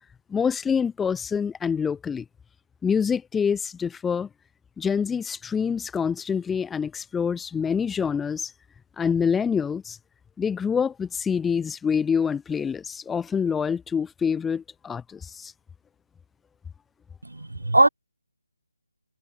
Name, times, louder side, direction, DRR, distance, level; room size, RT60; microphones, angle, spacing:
voice 1, 0.3-2.2 2.8-4.3 4.8-8.5 9.0-10.0 10.4-15.5, left 6 dB, 5° left, 7.6 m, -26 dB
voice 2, 17.2-17.9, right 2 dB, 85° right, 7.2 m, -20 dB
figure-of-eight pair, 155°, 0 cm